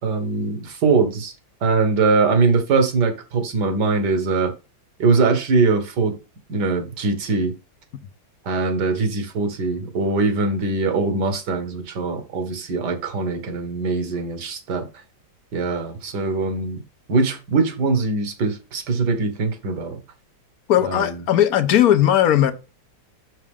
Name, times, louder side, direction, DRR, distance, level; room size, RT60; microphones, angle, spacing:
voice 1, 0.0-1.3 1.6-4.5 5.0-6.2 6.5-7.5 8.4-14.9 15.5-16.8 17.1-20.0 20.8-21.2, right 3 dB, 65° right, 1.9 m, -22 dB
voice 2, 20.7-22.5, left 11 dB, 65° left, 1.0 m, -17 dB
6.5 x 6.0 x 3.5 m
omnidirectional pair, 2.1 m